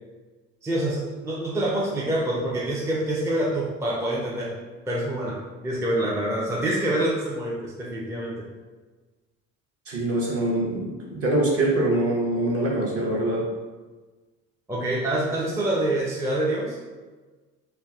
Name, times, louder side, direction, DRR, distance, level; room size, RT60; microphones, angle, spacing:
voice 1, 0.6-4.5 4.9-5.4 5.6-8.3 14.7-16.8, right 1 dB, 10° right, -5 dB, 0.5 m, -26 dB
voice 2, 9.9-13.5, right 1 dB, 35° right, -3 dB, 0.8 m, -24 dB
3.1 x 2.1 x 2.3 m, 1.3 s
hypercardioid pair, 55°, 39 cm